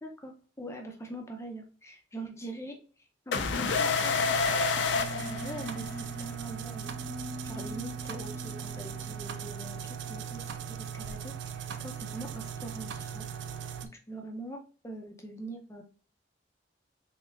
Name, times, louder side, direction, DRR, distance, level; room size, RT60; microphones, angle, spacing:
voice 1, 0.0-4.4 4.8-6.9 7.4-13.3 14.1-15.8, right 1 dB, 15° left, 2 dB, 0.6 m, -43 dB
sound 1, 3.3-6.1, left 5 dB, 85° left, 0.5 m, -28 dB
sound 2, 3.7-13.9, right 8 dB, 85° right, 0.4 m, -39 dB
sound 3, 4.9-10.1, left 1 dB, 30° right, 1.4 m, -44 dB
4.0 x 3.6 x 2.4 m, 0.37 s
head